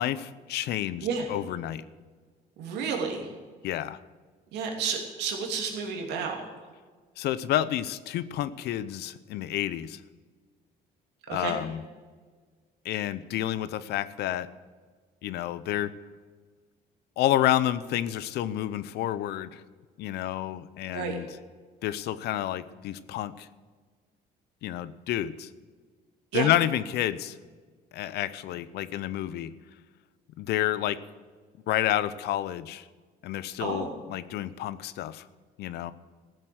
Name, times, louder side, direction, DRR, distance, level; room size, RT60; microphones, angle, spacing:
voice 1, 0.0-1.8 3.6-4.0 7.2-10.0 11.3-11.8 12.8-14.5 15.2-15.9 17.2-19.6 20.0-21.3 21.8-23.5 24.6-25.5 26.3-27.4 27.9-29.5 30.4-31.0 31.7-32.8 33.2-35.2 35.6-35.9, left 12 dB, 75° left, 15 dB, 0.7 m, -29 dB
voice 2, 2.6-3.3 4.5-6.4 11.3-11.6 20.9-21.2 26.3-26.5 33.6-34.0, right 6 dB, 85° right, 2 dB, 2.9 m, -31 dB
15.0 x 7.7 x 7.9 m, 1.5 s
cardioid pair, 110°, 17 cm